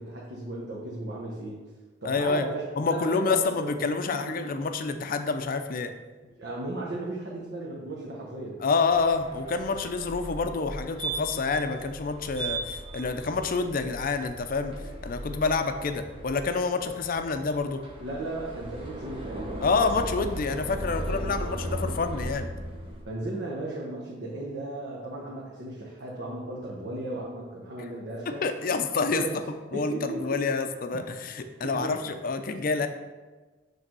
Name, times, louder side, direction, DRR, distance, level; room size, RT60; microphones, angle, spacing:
voice 1, 0.0-1.6 2.0-3.8 4.1-4.5 6.4-8.6 18.0-19.5 23.1-28.4 29.1-29.3 29.7-30.4 30.9-31.1 31.6-32.1, right 2 dB, 65° right, -4 dB, 1.1 m, -35 dB
voice 2, 2.0-2.5 2.8-5.9 8.6-14.8 15.0-17.8 19.6-22.5 28.4-29.2 29.7-32.9, left 4 dB, 50° left, 8 dB, 0.5 m, -28 dB
sound 1, 8.9-23.0, right 1 dB, 30° right, 1.0 m, -37 dB
6.6 x 3.4 x 6.0 m, 1.3 s
head